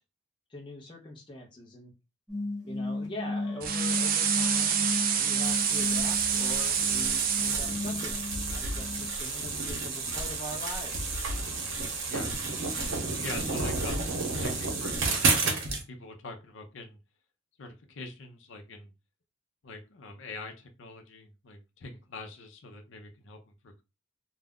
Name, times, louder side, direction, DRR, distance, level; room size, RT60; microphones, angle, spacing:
voice 1, 0.5-1.9 2.6-11.2, left 1 dB, 25° left, -1 dB, 0.6 m, -43 dB
sound 1, 2.3-9.1, left 2 dB, 5° left, 1.2 m, -35 dB
sound 2, 3.6-7.8, right 8 dB, 45° right, 0.3 m, -27 dB
sound 3, 5.4-15.8, right 3 dB, 85° right, 0.8 m, -31 dB
voice 2, 13.2-14.1 14.4-17.0 17.6-18.9 19.6-23.8, left 3 dB, 70° left, 5 dB, 0.6 m, -44 dB
2.4 x 2.0 x 3.5 m, 0.27 s
head